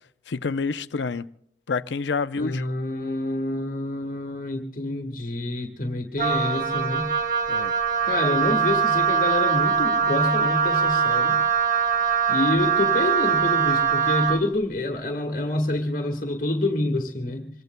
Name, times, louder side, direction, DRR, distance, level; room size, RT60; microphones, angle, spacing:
voice 1, 0.3-1.3 1.7-2.7 7.5-7.7, left 4 dB, 80° left, 0.6 m, -28 dB
voice 2, 2.4-7.1 8.0-11.4 12.3-17.5, left 1 dB, 45° left, 1.6 m, -27 dB
Wind instrument woodwind instrument, 6.2-14.4, right 6 dB, 45° right, 0.9 m, -22 dB
25.5 x 23.0 x 2.2 m
head